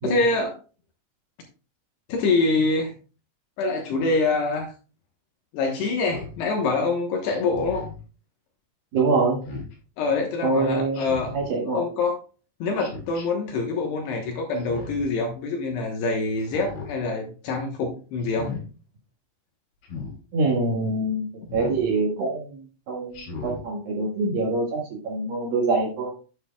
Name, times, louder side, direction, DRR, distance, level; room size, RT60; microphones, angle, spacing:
voice 1, 0.0-0.6 2.1-2.9 3.6-4.7 5.5-7.9 10.0-11.3 11.7-12.2 12.6-18.5, left 3 dB, 70° left, 1 dB, 2.8 m, -25 dB
Speech synthesizer, 6.0-6.4 7.5-8.0 9.4-9.7 10.9-11.4 12.8-13.3 14.6-15.1 16.4-16.9 18.2-18.6 19.8-20.1 21.5-21.8 23.1-23.6, left 4 dB, 50° left, 4.5 m, -36 dB
voice 2, 8.9-9.4 10.4-11.0 11.3-11.8 20.3-21.3 21.5-26.1, right 3 dB, 55° right, -2 dB, 3.0 m, -25 dB
9.4 x 9.1 x 2.3 m, 0.36 s
omnidirectional pair, 5.8 m